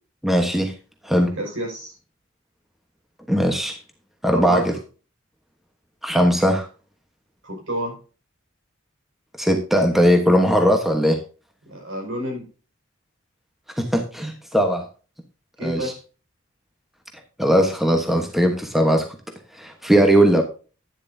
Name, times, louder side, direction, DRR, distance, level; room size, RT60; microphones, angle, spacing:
voice 1, 0.2-0.7 1.0-1.3 3.3-3.8 4.2-4.7 6.0-6.7 9.4-11.2 13.8-14.9 15.6-15.9 17.4-19.1 19.5-20.4, equal, ahead, 3 dB, 1.2 m, -19 dB
voice 2, 1.3-1.9 4.3-4.7 7.4-7.9 11.6-12.5 15.6-15.9, right 1 dB, 70° right, 0 dB, 5.6 m, -29 dB
11.0 x 10.0 x 2.7 m, 0.35 s
head